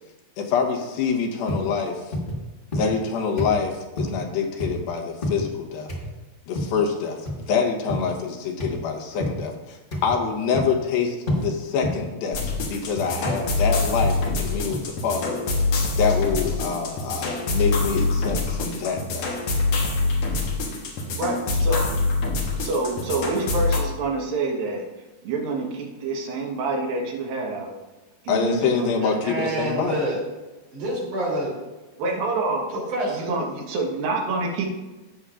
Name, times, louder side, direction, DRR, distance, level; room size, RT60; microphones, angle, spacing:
voice 1, 0.4-2.1 2.7-5.9 6.5-15.4 15.9-19.3 28.3-30.0, left 6 dB, 85° left, 2 dB, 2.9 m, -26 dB
sound 1, 1.5-1.7 2.1-2.4 2.7-3.1 3.4-3.6 4.0-4.2 4.6-4.8 5.2-5.5 5.9-6.1 6.5-6.8 7.2-7.5 7.9-8.1 8.6-8.8 9.2-9.4 9.9-10.2 10.5-10.8 11.3-11.5 11.8-12.1 12.6-12.8 13.2-13.5 14.0-14.3 14.7-14.8, left 1 dB, 40° left, 0.6 m, -28 dB
sound 2, 12.3-23.8, left 3 dB, 60° left, 1.9 m, -25 dB
voice 2, 21.1-22.0 22.6-24.8 25.2-27.7 28.2-28.9 29.4-29.5 32.0-32.7 33.1-34.7, right 3 dB, 85° right, 0 dB, 3.2 m, -27 dB
voice 3, 29.0-30.2 30.7-31.5 32.7-33.3, right 1 dB, 60° right, -5 dB, 4.4 m, -27 dB
15.5 x 6.8 x 2.5 m, 1.1 s
omnidirectional pair, 4.0 m